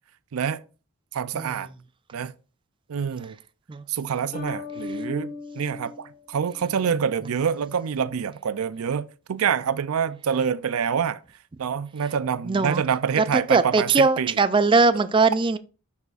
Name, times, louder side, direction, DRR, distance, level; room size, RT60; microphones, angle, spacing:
voice 1, 1.1-1.7 2.1-2.3 2.9-3.4 3.9-11.2 11.6-14.4, right 7 dB, 90° right, 0.4 m, -26 dB
sound 1, 4.3-7.0, left 4 dB, 35° left, 2.1 m, -37 dB
voice 2, 12.5-12.8 13.2-15.6, right 3 dB, 25° right, 0.4 m, -20 dB
11.5 x 4.2 x 2.4 m
head